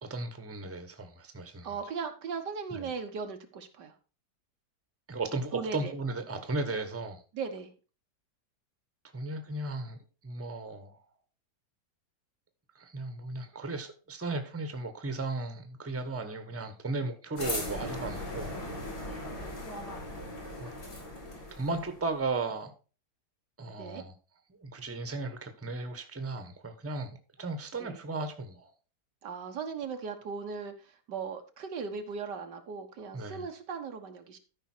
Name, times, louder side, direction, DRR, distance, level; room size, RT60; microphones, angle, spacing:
voice 1, 0.0-1.7 2.7-2.9 5.1-7.2 9.1-11.0 12.7-18.5 20.6-20.7 21.5-22.7 23.6-24.1 24.6-28.7 33.1-33.5, right 3 dB, 10° right, 0.9 m, -36 dB
voice 2, 1.6-4.0 5.5-5.9 7.3-7.7 17.7-17.9 19.1-19.2 23.8-24.0 27.8-28.0 29.2-34.4, right 5 dB, 90° right, 1.9 m, -38 dB
sound 1, 17.4-22.2, left 1 dB, 70° left, 3.5 m, -38 dB
13.0 x 5.3 x 4.4 m
omnidirectional pair, 1.8 m